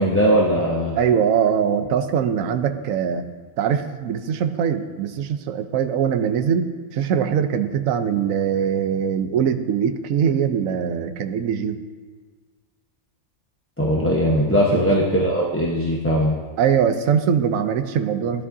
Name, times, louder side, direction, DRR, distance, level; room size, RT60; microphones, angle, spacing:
voice 1, 0.0-0.9 13.8-16.3, equal, 10° left, -4 dB, 0.9 m, -19 dB
voice 2, 0.9-3.2 3.6-11.8 14.7-14.8 16.6-18.5, right 8 dB, 70° right, 8 dB, 1.1 m, -22 dB
17.5 x 11.0 x 2.7 m, 1.5 s
omnidirectional pair, 1.5 m